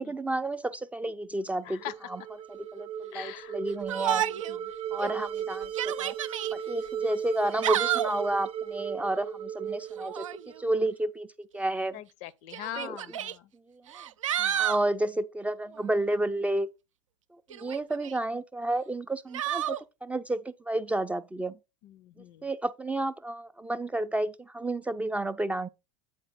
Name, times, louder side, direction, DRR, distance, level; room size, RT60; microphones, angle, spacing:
voice 1, 0.0-1.8 2.1-2.2 2.5-4.2 4.9-6.1 6.5-10.2 10.6-12.0 12.8-13.2 13.7-13.8 14.6-16.7 17.5-21.5 22.4-25.7, right 1 dB, 10° right, 0.4 m, -31 dB
sound 1, 1.7-10.9, right 8 dB, 35° right, 0.8 m, -36 dB
voice 2, 3.1-3.6 4.1-4.7 11.9-13.5 14.4-14.6 21.8-22.5, left 12 dB, 50° left, 0.6 m, -42 dB
Yell, 3.9-4.6 5.0-5.1 5.6-6.5 7.4-8.2 10.0-10.4 11.6-11.7 12.5-13.3 13.9-14.9 17.5-18.2 19.3-19.8, right 11 dB, 75° right, 0.4 m, -30 dB
8.6 x 4.2 x 4.0 m
figure-of-eight pair, 80°, 17 cm